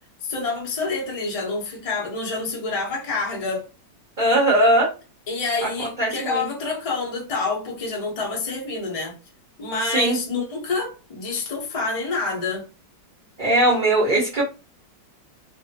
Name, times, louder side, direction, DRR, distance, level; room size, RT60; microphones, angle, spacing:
voice 1, 0.2-3.7 5.3-9.1 9.6-12.7, left 3 dB, 45° left, 0.4 m, -27 dB
voice 2, 4.2-4.9 6.0-6.5 9.9-10.2 13.4-14.4, right 1 dB, 40° right, 0.6 m, -19 dB
2.7 x 2.6 x 2.7 m
omnidirectional pair, 2.0 m